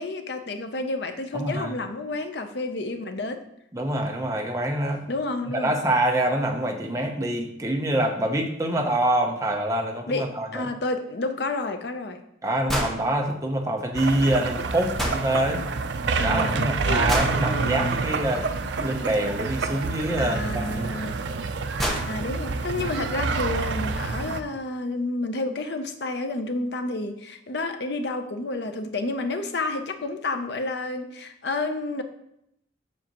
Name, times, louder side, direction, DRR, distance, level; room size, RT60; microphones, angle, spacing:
voice 1, 0.0-3.4 5.1-5.7 10.1-10.2 10.5-12.2 16.2-18.0 20.2-21.2 22.0-32.0, left 2 dB, 65° left, 7 dB, 0.7 m, -30 dB
voice 2, 1.3-1.7 3.7-5.1 5.5-10.7 12.4-15.7 16.1-18.5 18.8-21.1, right 1 dB, 15° right, 2 dB, 0.7 m, -26 dB
sound 1, 12.7-13.0 15.0-15.2 17.1-17.4 19.6-19.7 21.0-21.1 21.5-21.6 21.8-22.1, equal, ahead, 0.9 m, -27 dB
sound 2, 13.9-24.4, right 4 dB, 75° right, 0.5 m, -28 dB
7.2 x 6.5 x 3.0 m, 0.77 s
head